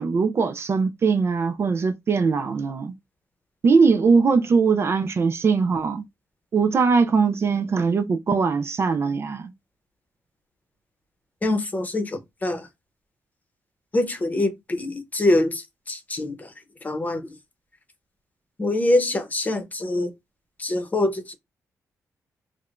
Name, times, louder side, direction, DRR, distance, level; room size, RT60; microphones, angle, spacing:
voice 1, 0.0-2.9 3.6-6.0 6.5-9.5, right 5 dB, 45° right, 0.4 m, -21 dB
voice 2, 11.4-12.7 13.9-16.5 16.8-17.3 18.6-20.1 20.6-21.3, left 2 dB, 25° left, 0.8 m, -24 dB
4.7 x 2.2 x 2.4 m
cardioid pair, 105°, 6 cm